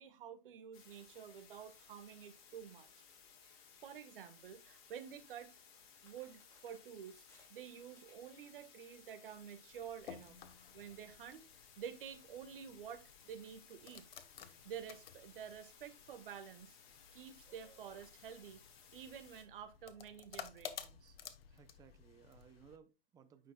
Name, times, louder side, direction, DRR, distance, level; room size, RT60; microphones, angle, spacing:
voice 1, 0.0-3.0 3.4-3.6 3.8-5.5 6.0-7.2 7.5-10.4 10.7-14.0 14.6-16.8 17.1-18.6 18.9-21.2, right 8 dB, 65° right, 1.7 m, -50 dB
sound 1, 0.7-19.4, left 7 dB, 55° left, 2.6 m, -62 dB
sound 2, 4.9-10.9, left 2 dB, 10° left, 2.4 m, -72 dB
sound 3, 9.7-22.8, left 8 dB, 80° left, 1.2 m, -55 dB
voice 2, 21.5-23.5, right 7 dB, 10° right, 0.6 m, -61 dB
9.3 x 6.4 x 2.3 m
hypercardioid pair, 145°, 29 cm